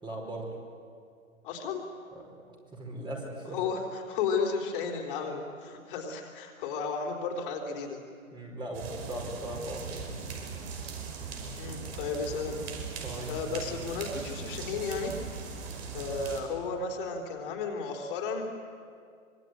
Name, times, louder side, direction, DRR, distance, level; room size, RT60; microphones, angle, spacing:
voice 1, 0.0-0.5 2.1-2.4 2.7-3.6 8.3-10.0 13.0-13.7, right 1 dB, 10° right, -1 dB, 4.8 m, -39 dB
voice 2, 1.4-1.8 3.5-8.0 11.6-12.6 13.3-15.1 15.9-18.4, left 5 dB, 40° left, 1 dB, 3.9 m, -33 dB
sound 1, 8.7-16.4, right 5 dB, 50° right, 5.6 m, -39 dB
26.0 x 23.5 x 9.2 m, 2.2 s
hypercardioid pair, 135°, 41 cm